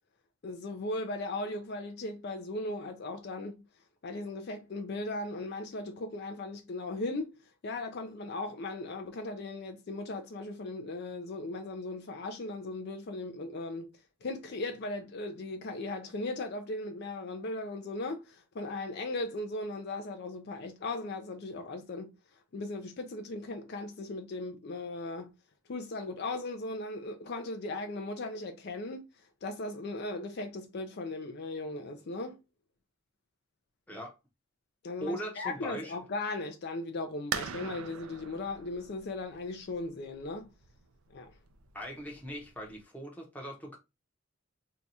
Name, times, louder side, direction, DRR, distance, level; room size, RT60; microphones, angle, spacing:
voice 1, 0.4-3.6 4.0-7.3 7.6-13.9 14.2-22.1 22.5-25.3 25.7-29.0 29.4-32.4 34.8-40.5 41.1-41.3, left 2 dB, 50° left, 0.4 m, -37 dB
voice 2, 35.0-36.0 41.7-43.8, equal, 5° left, 0.7 m, -40 dB
sound 1, 37.3-42.8, right 7 dB, 90° right, 0.4 m, -42 dB
2.7 x 2.3 x 4.0 m
head